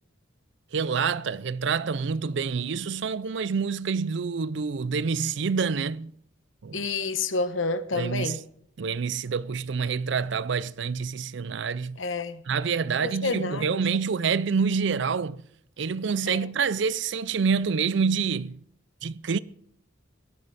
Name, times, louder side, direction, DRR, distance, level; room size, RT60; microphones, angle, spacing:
voice 1, 0.7-6.1 6.6-6.8 7.9-8.4 8.8-12.0 12.5-15.4 15.8-18.6 19.0-19.4, right 5 dB, 60° right, 0.5 m, -27 dB
voice 2, 6.7-8.4 12.0-12.4 13.0-13.8 16.3-16.4, left 3 dB, 70° left, 1.1 m, -29 dB
18.0 x 12.5 x 4.1 m
head